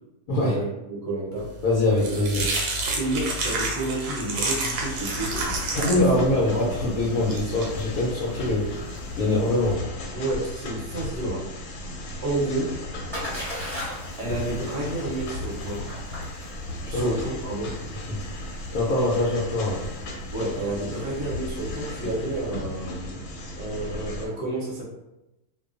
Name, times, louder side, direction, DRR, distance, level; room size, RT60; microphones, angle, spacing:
voice 1, 0.4-1.6 2.9-5.6 5.9-6.7 10.1-11.5 12.2-12.8 14.2-15.9 16.9-17.8 20.3-23.2 23.6-24.8, right 2 dB, 40° right, -5 dB, 0.7 m, -30 dB
sound 1, 1.5-9.7, right 2 dB, 85° right, 1.1 m, -31 dB
voice 2, 1.6-2.4 5.7-8.6 9.2-9.8 16.8-17.1 18.1-18.2 18.7-19.8, left 1 dB, 70° left, -6 dB, 1.0 m, -23 dB
sound 2, 4.7-24.3, left 1 dB, 90° left, 1.1 m, -36 dB
Splash splatter, 12.4-22.3, left 1 dB, ahead, 0.7 m, -39 dB
2.5 x 2.2 x 2.5 m, 0.96 s
omnidirectional pair, 1.7 m